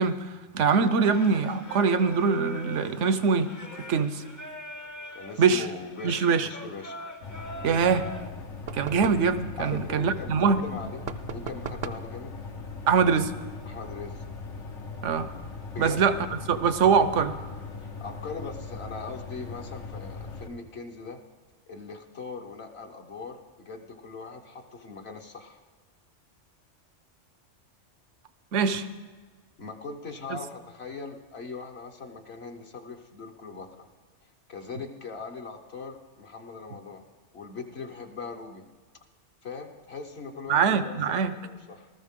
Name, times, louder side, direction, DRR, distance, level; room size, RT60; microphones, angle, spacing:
voice 1, 0.0-3.5 3.9-4.2 5.4-5.7 6.0-6.5 7.6-8.0 8.7-10.6 12.9-13.3 15.0-15.3 15.8-16.1 16.5-17.4 28.5-28.9 30.3-30.4 40.5-41.3, right 5 dB, 90° right, 12 dB, 1.1 m, -23 dB
Singing, 1.0-8.3, left 1 dB, 20° left, 0.5 m, -43 dB
voice 2, 5.1-7.0 9.6-11.0 11.3-12.4 13.6-14.2 15.7-16.0 17.8-21.2 21.7-25.6 29.6-33.9 34.5-37.0 37.3-38.6 39.4-41.9, left 4 dB, 60° left, 3 dB, 1.2 m, -40 dB
sound 1, 7.2-20.5, left 4 dB, 80° left, 1.6 m, -40 dB
sound 2, 8.7-9.3 11.0-12.1, right 6 dB, 55° right, 0.6 m, -37 dB
19.0 x 13.5 x 3.7 m, 1.4 s
omnidirectional pair, 1.2 m